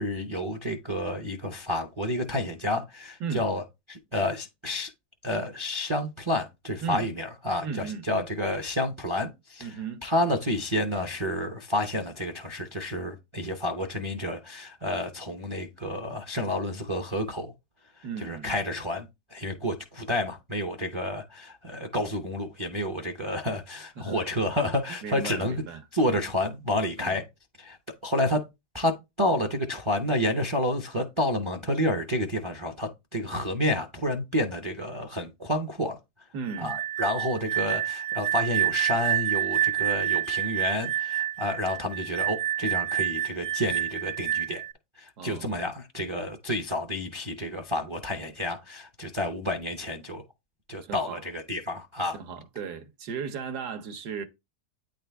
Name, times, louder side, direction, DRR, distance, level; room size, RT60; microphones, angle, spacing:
voice 1, 0.0-4.9 5.2-9.7 10.0-17.5 18.2-19.1 19.3-25.6 25.9-27.2 27.6-27.8 28.0-28.4 28.7-36.0 36.6-44.6 45.0-50.2 50.7-52.2, left 1 dB, 40° right, 0.4 m, -30 dB
voice 2, 7.6-8.3 9.6-10.0 18.0-18.5 24.0-24.3 25.0-25.8 27.0-27.2 36.3-36.8 45.2-45.6 50.8-51.2 52.1-54.2, right 6 dB, 80° right, 1.5 m, -36 dB
sound 1, 36.5-44.7, right 12 dB, 60° right, 1.3 m, -28 dB
9.1 x 3.8 x 3.4 m
omnidirectional pair, 1.7 m